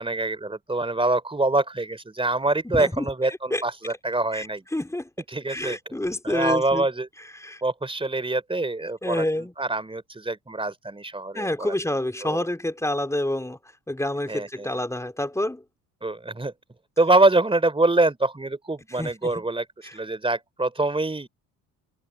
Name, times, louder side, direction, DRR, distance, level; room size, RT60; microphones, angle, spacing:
voice 1, 0.0-4.6 5.3-5.8 6.2-7.1 7.6-11.7 12.2-12.4 14.3-14.8 16.0-16.5 17.0-19.6 19.9-21.3, right 2 dB, 15° right, 3.4 m, -25 dB
voice 2, 2.7-3.6 4.3-4.5 4.7-5.1 5.5-6.9 7.2-7.6 9.0-9.5 11.3-13.6 13.9-15.6 18.9-19.5 19.8-20.0, left 1 dB, 10° left, 3.9 m, -28 dB
supercardioid pair, 75°, 36 cm